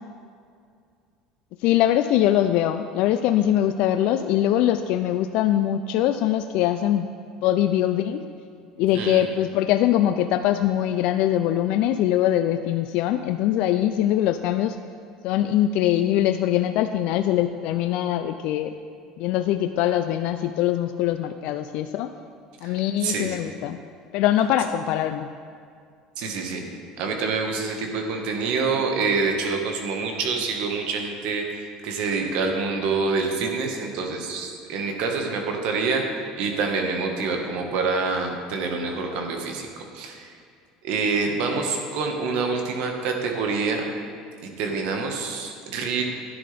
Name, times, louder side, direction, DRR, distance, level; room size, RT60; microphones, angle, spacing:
voice 1, 1.6-7.1 7.4-8.2 8.8-14.8 15.2-18.7 19.2-22.1 22.6-23.8 24.1-25.3, left 12 dB, 65° left, 9 dB, 0.4 m, -22 dB
voice 2, 23.0-23.4 26.2-26.6 27.0-39.7 39.9-40.3 40.8-43.8 44.6-46.0, right 4 dB, 70° right, 2 dB, 1.6 m, -26 dB
12.0 x 9.8 x 3.5 m, 2.3 s
supercardioid pair, 90°, 2 cm